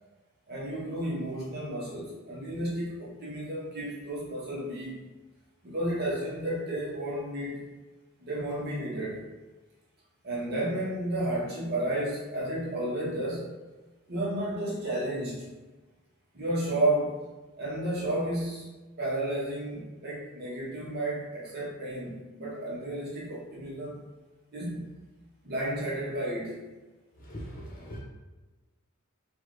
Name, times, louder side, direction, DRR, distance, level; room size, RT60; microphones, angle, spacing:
voice 1, 0.5-5.0 5.6-7.6 8.2-9.2 10.2-13.6 14.1-15.5 16.3-17.2 17.6-24.0 24.5-24.9 25.4-26.6, right 1 dB, 50° right, -6 dB, 1.2 m, -32 dB
voice 2, 27.2-28.0, equal, 45° left, -4 dB, 1.1 m, -40 dB
4.1 x 2.6 x 3.2 m, 1.2 s
head